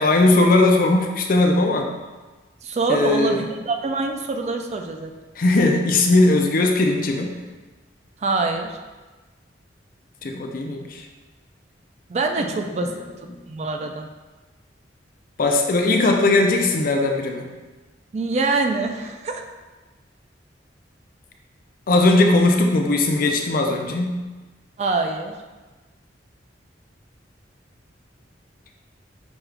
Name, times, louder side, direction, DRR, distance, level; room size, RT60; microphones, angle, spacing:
voice 1, 0.0-1.9 2.9-3.5 5.4-7.3 10.2-11.1 13.3-13.4 15.4-17.5 21.9-24.2, left 2 dB, 50° left, 3 dB, 0.5 m, -18 dB
voice 2, 2.6-5.1 8.2-8.8 12.1-12.9 13.5-14.1 18.1-19.4 24.8-25.3, right 3 dB, 35° right, 4 dB, 0.3 m, -24 dB
6.1 x 2.4 x 3.2 m, 1.2 s
head